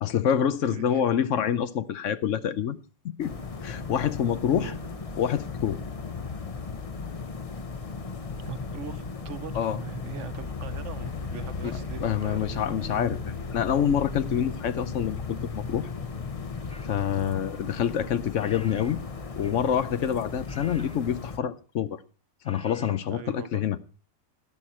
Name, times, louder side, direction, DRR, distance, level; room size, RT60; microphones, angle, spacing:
voice 1, 0.0-2.8 3.0-3.3 3.6-4.7 5.2-5.8 9.5-9.8 11.6-13.2 13.5-15.9 16.8-19.0 19.4-22.0 22.4-23.8, left 9 dB, 70° left, 1.0 m, -27 dB
voice 2, 0.6-1.0 4.5-4.9 8.4-13.2 23.1-23.6, right 8 dB, 65° right, 1.2 m, -41 dB
sound 1, 3.2-21.4, left 4 dB, 30° left, 0.8 m, -36 dB
sound 2, 16.7-17.0 18.4-19.0 19.4-19.7 20.5-21.1 22.4-23.0, left 1 dB, 10° left, 0.4 m, -49 dB
12.0 x 11.0 x 4.2 m
omnidirectional pair, 1.4 m